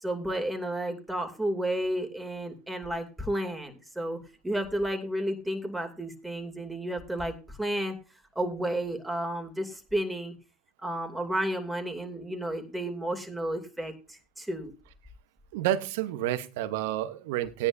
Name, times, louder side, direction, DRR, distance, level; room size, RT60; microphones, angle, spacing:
voice 1, 0.0-4.2 4.4-8.0 8.4-10.3 10.8-14.7, right 1 dB, 5° right, 2.7 m, -32 dB
voice 2, 15.5-17.7, right 13 dB, 75° right, 0.9 m, -29 dB
16.5 x 9.9 x 2.6 m
hypercardioid pair, 80°, 0 cm